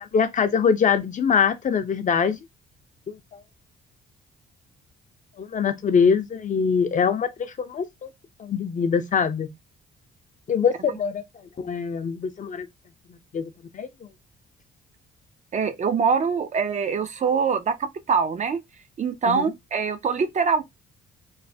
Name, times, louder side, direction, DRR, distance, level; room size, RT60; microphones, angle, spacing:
voice 1, 0.0-2.4 3.1-3.4 5.4-8.1 8.4-9.5 10.5-11.2 11.6-12.7 13.3-13.9 19.3-19.5, left 6 dB, 40° left, 0.5 m, -23 dB
voice 2, 15.5-18.6 19.0-20.6, right 5 dB, 35° right, 0.4 m, -24 dB
3.1 x 2.0 x 2.6 m
cardioid pair, 90°, 20 cm